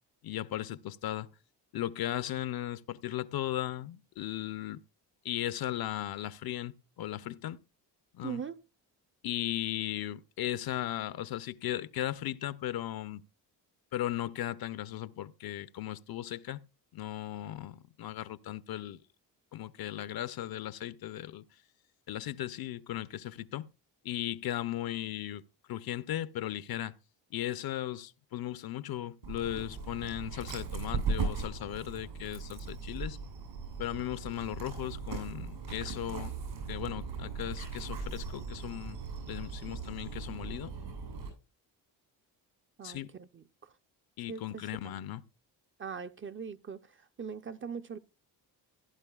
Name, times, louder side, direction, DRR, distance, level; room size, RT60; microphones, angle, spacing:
voice 1, 0.2-1.3 1.7-4.8 5.2-7.6 8.1-8.4 9.2-13.2 13.9-16.6 16.9-19.0 19.5-21.4 22.1-23.7 24.0-25.4 25.7-26.9 27.3-33.2 33.8-36.3 36.7-39.0 39.3-40.7 42.8-43.1 44.2-45.2, left 13 dB, 60° left, 0.7 m, -37 dB
voice 2, 8.2-8.6 39.7-39.8 42.8-43.7 44.3-44.7 45.8-48.0, right 6 dB, 30° right, 0.6 m, -41 dB
Dog, 29.2-41.3, right 4 dB, 80° right, 7.4 m, -38 dB
16.0 x 11.0 x 2.3 m
cardioid pair, 80°, 42 cm